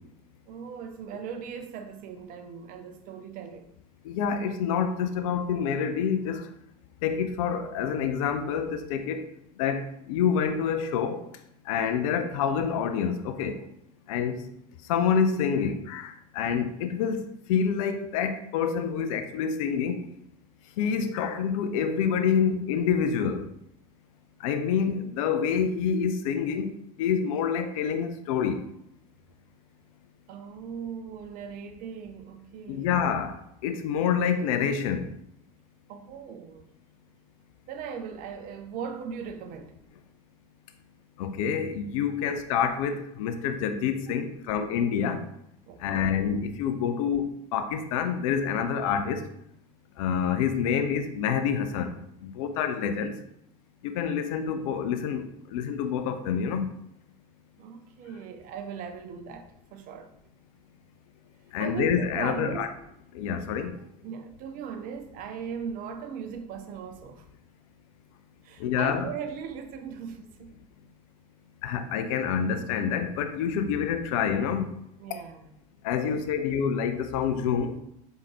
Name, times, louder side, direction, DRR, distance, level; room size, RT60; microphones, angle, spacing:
voice 1, 0.5-3.7 30.3-33.0 35.9-36.7 37.7-39.7 42.2-42.3 45.7-46.1 57.6-60.1 61.6-62.7 64.0-67.3 68.4-70.5 75.0-75.5 76.0-76.5, right 7 dB, 50° right, 0.5 m, -39 dB
voice 2, 4.1-6.5 7.0-9.3 9.6-11.2 11.7-13.6 14.1-14.4 14.9-20.0 20.8-23.5 24.4-26.7 27.0-28.6 32.7-33.3 33.6-35.1 41.2-45.2 45.8-49.2 50.0-51.9 52.2-53.1 53.8-56.7 61.5-62.7 63.1-63.8 68.6-69.1 71.6-74.7 75.8-77.8, left 7 dB, 60° left, 0.5 m, -27 dB
4.4 x 3.6 x 2.9 m
figure-of-eight pair, 65°, 19 cm